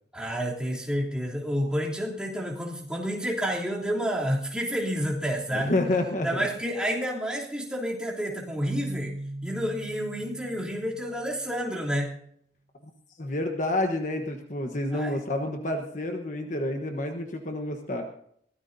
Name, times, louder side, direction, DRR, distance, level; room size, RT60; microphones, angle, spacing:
voice 1, 0.1-5.7 6.2-9.1 9.4-12.1 14.9-15.1, equal, 5° right, -4 dB, 3.0 m, -29 dB
voice 2, 5.5-6.5 13.2-18.1, left 1 dB, 45° left, 4 dB, 1.2 m, -29 dB
Keyboard (musical), 8.6-11.5, right 1 dB, 60° right, 1.7 m, -38 dB
22.5 x 17.0 x 2.7 m, 0.69 s
head